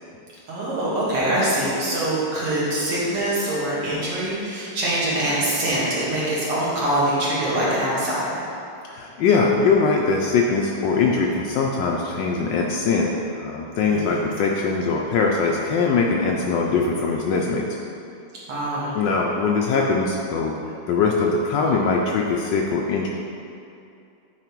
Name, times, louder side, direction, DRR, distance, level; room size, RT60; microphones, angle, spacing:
voice 1, 0.5-8.4 13.9-14.2 18.5-18.9, right 1 dB, 90° right, -8 dB, 2.6 m, -24 dB
voice 2, 8.9-17.7 18.9-20.5 20.9-23.1, left 4 dB, 75° left, -1 dB, 1.1 m, -21 dB
8.9 x 3.4 x 4.5 m, 2.6 s
omnidirectional pair, 2.4 m